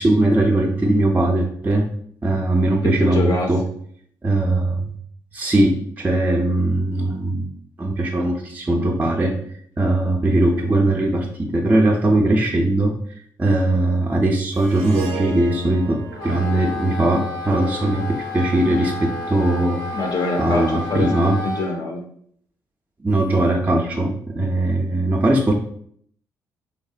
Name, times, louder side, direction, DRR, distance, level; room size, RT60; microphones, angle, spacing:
voice 1, 0.0-1.9 2.2-3.6 4.2-4.9 5.3-7.5 7.8-9.4 9.8-13.0 13.4-19.9 20.4-21.4 23.0-25.5, right 1 dB, 20° right, 0 dB, 0.4 m, -20 dB
voice 2, 2.8-3.5 19.9-22.0, left 3 dB, 45° left, 2 dB, 0.4 m, -24 dB
Harp, 14.5-18.9, right 6 dB, 80° right, 0.4 m, -37 dB
Wind instrument woodwind instrument, 16.1-21.7, left 3 dB, 85° left, 0.9 m, -31 dB
2.7 x 2.0 x 2.4 m, 0.63 s
hypercardioid pair, 45°, 10 cm